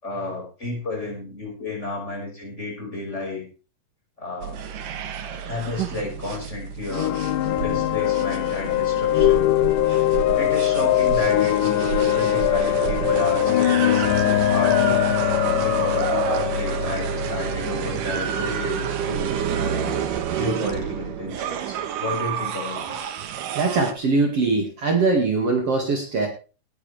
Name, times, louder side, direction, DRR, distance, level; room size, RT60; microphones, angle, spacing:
voice 1, 0.0-3.5 4.2-4.6 5.5-7.2 7.6-9.5 10.1-15.0 15.6-23.1, left 2 dB, 20° left, 0 dB, 5.8 m, -32 dB
sound 1, 4.4-23.9, right 8 dB, 80° right, 2.9 m, -29 dB
sound 2, 6.9-18.6, left 14 dB, 80° left, 2.3 m, -22 dB
voice 2, 23.6-26.3, right 3 dB, 50° right, 2 dB, 3.0 m, -21 dB
19.0 x 11.0 x 3.5 m, 0.35 s
omnidirectional pair, 3.8 m